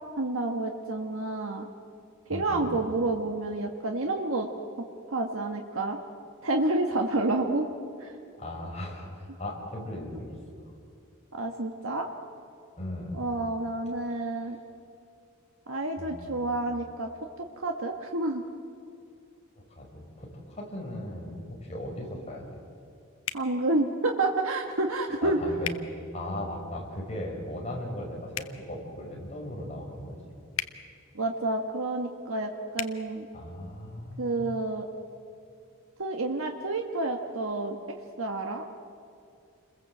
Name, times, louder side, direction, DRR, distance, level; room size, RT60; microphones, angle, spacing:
voice 1, 0.2-1.7 2.3-4.5 5.1-6.0 6.4-7.7 8.0-8.1 11.3-12.1 13.1-14.6 15.7-17.1 17.6-18.4 23.3-25.5 31.1-33.3 34.2-34.9 36.0-37.8 38.2-38.7, right 2 dB, 75° right, 3 dB, 1.5 m, -29 dB
voice 2, 2.3-2.7 8.4-10.6 12.8-13.2 16.0-16.6 19.6-22.6 25.2-30.2 33.3-34.5, left 1 dB, 30° left, -1 dB, 5.4 m, -38 dB
sound 1, 23.2-23.5 25.6-25.8 28.3-28.5 30.5-30.7 32.7-32.9, left 10 dB, 75° left, 1.1 m, -34 dB
29.0 x 21.5 x 7.9 m, 2.4 s
head